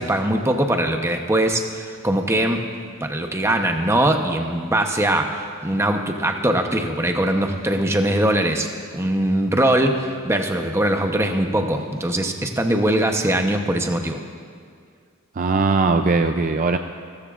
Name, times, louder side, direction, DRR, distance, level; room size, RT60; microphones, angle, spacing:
voice 1, 0.0-2.7 3.0-8.7 8.9-14.2, right 1 dB, 15° right, 4 dB, 0.9 m, -21 dB
voice 2, 15.4-16.8, right 4 dB, 40° right, 7 dB, 0.4 m, -19 dB
29.0 x 14.0 x 2.5 m, 2.2 s
head